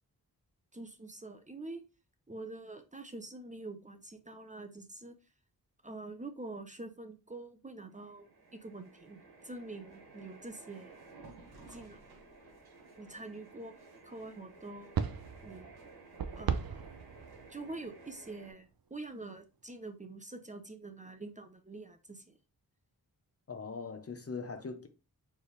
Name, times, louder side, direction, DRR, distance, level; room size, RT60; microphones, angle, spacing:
voice 1, 0.7-1.8 2.3-5.1 5.8-10.9 11.7-12.0 13.0-13.7 14.0-15.0 15.4-15.7 16.4-16.8 17.5-22.4, right 2 dB, 20° right, 0.6 m, -46 dB
sound 1, 7.9-18.5, right 3 dB, 85° right, 1.7 m, -55 dB
sound 2, 15.0-18.3, right 7 dB, 70° right, 0.6 m, -37 dB
voice 2, 23.5-24.9, left 4 dB, 40° left, 0.7 m, -41 dB
4.4 x 3.4 x 3.2 m
wide cardioid pair, 100°, 37 cm